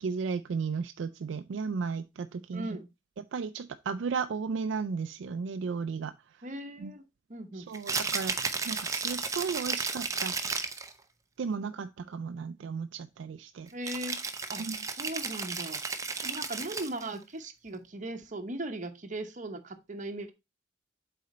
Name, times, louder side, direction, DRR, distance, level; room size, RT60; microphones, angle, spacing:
voice 1, 0.0-2.8 3.2-6.5 6.8-6.9 7.5-10.3 11.4-13.7 14.6-14.8, right 5 dB, 70° right, 0.4 m, -35 dB
voice 2, 2.5-2.9 6.4-7.0 7.3-7.7 13.7-14.2 14.5-14.7 15.0-15.8 16.2-20.3, right 1 dB, 40° right, 0.9 m, -38 dB
Rattle (instrument), 7.7-10.9 13.8-17.1, right 4 dB, 15° right, 0.5 m, -33 dB
7.7 x 4.2 x 4.2 m
head